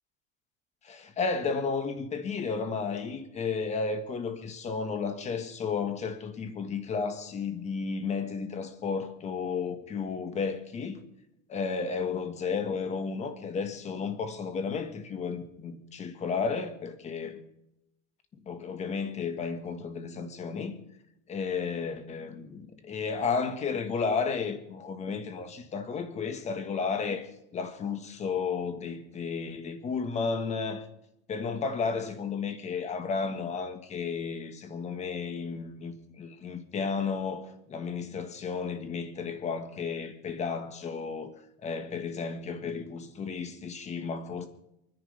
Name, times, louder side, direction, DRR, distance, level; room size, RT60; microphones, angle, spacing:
voice 1, 0.8-11.0 11.5-17.4 18.4-20.7 21.3-30.8 31.3-41.3 41.6-44.5, left 5 dB, 20° left, 1.6 m, -33 dB
28.5 x 10.5 x 3.5 m
cardioid pair, 165°, 30 cm